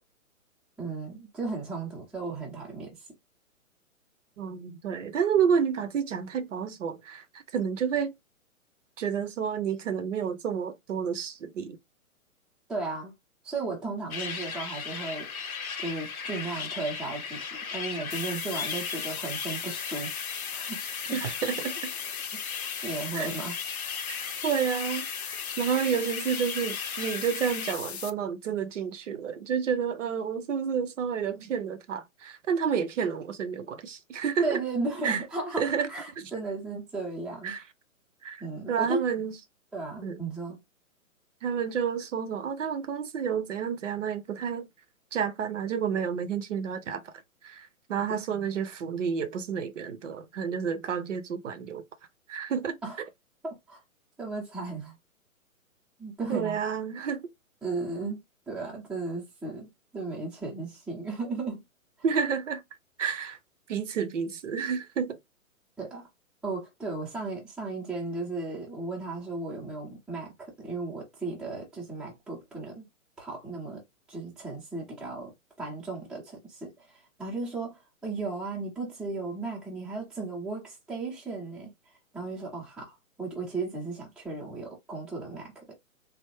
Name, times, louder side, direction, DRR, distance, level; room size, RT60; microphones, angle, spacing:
voice 1, 0.8-3.1 12.7-13.1 13.4-15.3 15.8-20.2 20.5-20.8 22.3-22.4 22.8-23.6 34.4-37.5 38.4-39.0 39.7-40.6 48.1-48.2 52.8-53.0 53.4-53.8 54.2-55.0 56.0-56.6 57.6-61.6 65.8-66.0 66.4-72.9 73.2-73.8 74.1-75.3 75.6-76.7 77.2-81.7 82.1-85.8, right 3 dB, ahead, 0.6 m, -35 dB
voice 2, 4.4-8.1 9.0-11.8 21.1-21.9 23.1-23.3 24.1-34.6 35.0-35.2 35.6-35.9 36.2-36.3 37.4-37.6 38.2-38.4 38.7-39.3 40.0-40.2 41.4-44.7 45.1-47.1 47.4-51.8 52.3-52.8 56.3-57.3 62.0-62.6 63.0-63.4 63.7-65.2, right 7 dB, 60° right, 0.6 m, -30 dB
sound 1, 14.1-27.7, left 6 dB, 80° left, 0.9 m, -37 dB
sound 2, 18.1-28.1, left 8 dB, 50° left, 0.5 m, -38 dB
3.4 x 2.0 x 2.9 m
figure-of-eight pair, 130°, 42 cm